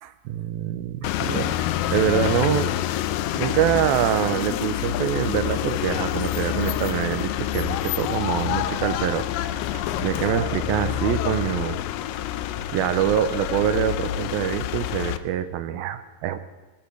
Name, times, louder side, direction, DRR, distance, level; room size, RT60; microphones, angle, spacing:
voice 1, 0.0-2.7 3.4-9.3 9.7-11.8 12.7-16.4, right 10 dB, 85° right, 10 dB, 2.5 m, -25 dB
sound 1, 1.0-15.2, left 13 dB, 80° left, 2.0 m, -27 dB
19.0 x 12.5 x 3.3 m, 1.2 s
omnidirectional pair, 4.3 m